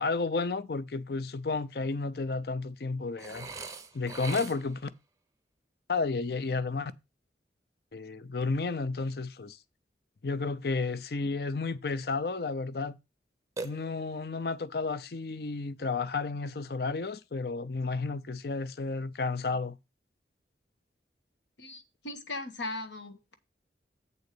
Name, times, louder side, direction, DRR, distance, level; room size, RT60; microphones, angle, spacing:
voice 1, 0.0-3.5 3.9-4.9 5.9-6.9 7.9-9.6 10.2-13.0 13.6-19.8, left 3 dB, 55° left, 0.5 m, -32 dB
Burping eructation, 3.2-4.9 13.6-14.3, right 3 dB, 20° right, 0.5 m, -41 dB
voice 2, 21.6-23.3, left 2 dB, 80° left, 1.3 m, -39 dB
8.2 x 3.9 x 6.6 m
head